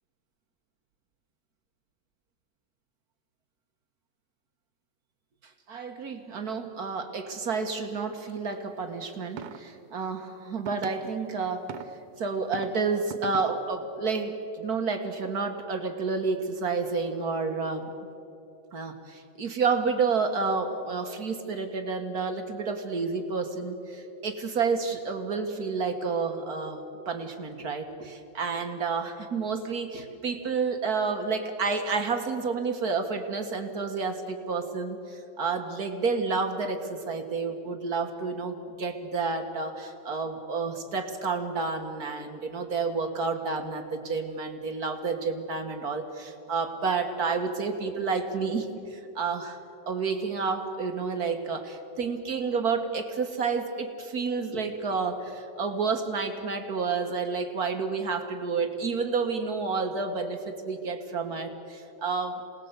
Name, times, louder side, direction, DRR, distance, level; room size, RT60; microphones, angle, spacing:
voice 1, 5.7-11.7 12.2-17.9 18.7-49.6 49.9-62.4, right 4 dB, 55° right, 6 dB, 1.1 m, -30 dB
sound 1, 9.4-9.6 10.7-10.9 11.7-11.9 12.5-12.7 13.1-13.4, right 9 dB, 75° right, 2.3 m, -37 dB
27.5 x 19.0 x 8.0 m, 2.9 s
omnidirectional pair, 3.3 m